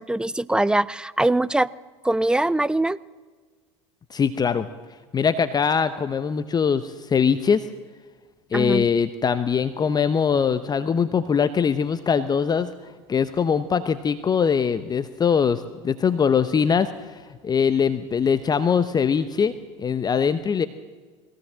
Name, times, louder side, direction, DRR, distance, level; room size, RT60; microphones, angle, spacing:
voice 1, 0.0-1.7 2.0-3.0 8.5-8.9, right 2 dB, 5° right, 20 dB, 0.6 m, -22 dB
voice 2, 4.1-4.7 5.1-7.7 8.5-12.7 13.1-19.5 19.8-20.7, left 6 dB, 25° left, 13 dB, 0.9 m, -22 dB
21.5 x 17.0 x 7.5 m, 1.5 s
hypercardioid pair, 90°, 15 cm